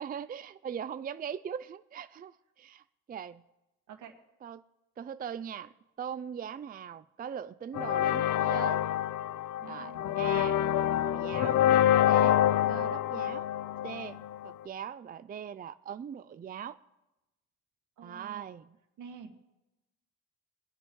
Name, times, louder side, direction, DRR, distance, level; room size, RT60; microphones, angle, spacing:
voice 1, 0.0-3.4 4.4-4.6 5.0-5.7 6.0-8.8 9.6-10.6 11.0-11.6 12.0-12.4 12.7-13.5 13.8-16.8 18.0-18.8, right 8 dB, 30° right, 0.4 m, -40 dB
sound 1, 7.7-14.5, left 11 dB, 80° left, 0.6 m, -27 dB
voice 2, 9.6-10.0 18.0-18.6 19.0-19.3, right 6 dB, 80° right, 2.0 m, -48 dB
22.5 x 9.6 x 3.2 m
cardioid pair, 90°, 30 cm